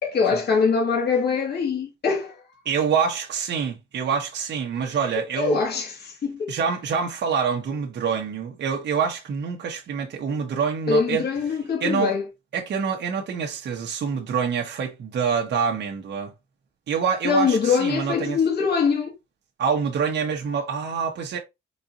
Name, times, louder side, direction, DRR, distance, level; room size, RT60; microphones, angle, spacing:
voice 1, 0.0-2.4 5.4-6.6 10.9-12.2 17.2-19.1, left 5 dB, 55° left, 2.0 m, -23 dB
voice 2, 2.6-5.6 6.5-11.2 11.8-12.1 12.5-16.3 16.9-18.4 19.6-21.4, right 6 dB, 60° right, 1.2 m, -26 dB
4.5 x 4.1 x 2.7 m
cardioid pair, 90°, 20 cm